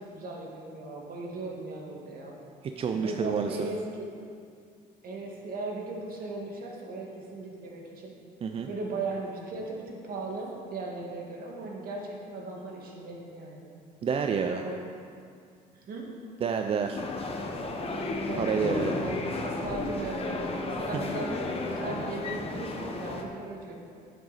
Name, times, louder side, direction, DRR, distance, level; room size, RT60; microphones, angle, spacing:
voice 1, 0.0-2.4 2.9-4.1 5.0-8.2 8.6-13.7 14.5-14.8 15.7-16.1 18.2-23.8, right 2 dB, 60° right, -1 dB, 1.8 m, -37 dB
voice 2, 2.6-3.6 8.4-8.7 14.0-14.6 16.4-17.0 18.4-19.1, right 6 dB, 35° right, 5 dB, 0.4 m, -29 dB
sound 1, 17.0-23.2, left 2 dB, 35° left, 0.9 m, -33 dB
8.9 x 7.8 x 4.1 m, 2.3 s
cardioid pair, 110°, 17 cm